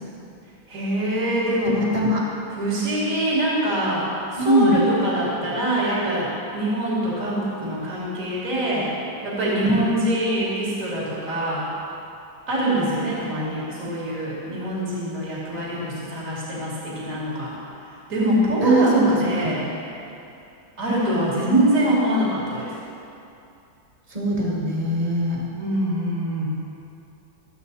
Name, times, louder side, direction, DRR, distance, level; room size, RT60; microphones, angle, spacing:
voice 1, 0.7-1.8 2.5-8.9 9.2-11.7 12.5-17.5 18.1-19.7 20.8-22.7 25.6-26.5, right 1 dB, 40° right, -7 dB, 3.2 m, -24 dB
voice 2, 1.6-2.2 4.4-4.8 9.7-10.0 18.6-19.6 24.1-25.5, right 1 dB, 15° right, -4 dB, 2.3 m, -21 dB
25.0 x 8.6 x 4.2 m, 2.7 s
omnidirectional pair, 2.2 m